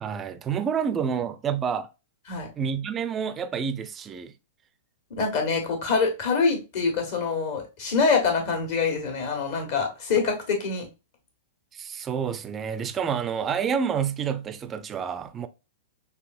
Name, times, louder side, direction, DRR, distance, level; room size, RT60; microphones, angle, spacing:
voice 1, 0.0-1.9 2.6-4.3 11.7-15.5, right 7 dB, 20° right, 0.5 m, -28 dB
voice 2, 5.1-10.9, left 5 dB, 50° left, 1.7 m, -25 dB
6.0 x 2.8 x 2.4 m
figure-of-eight pair, 100°, 0 cm